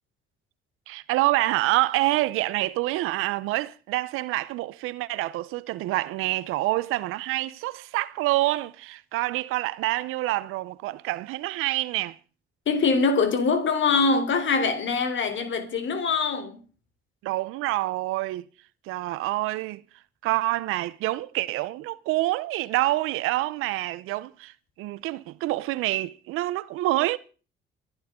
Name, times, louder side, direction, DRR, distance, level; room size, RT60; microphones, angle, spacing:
voice 1, 0.9-12.2 17.2-18.5 18.9-19.8 20.2-27.2, right 18 dB, 85° right, 0.8 m, -27 dB
voice 2, 12.7-16.6, left 4 dB, 65° left, 3.5 m, -23 dB
26.5 x 11.5 x 3.7 m
supercardioid pair, 60°, 21 cm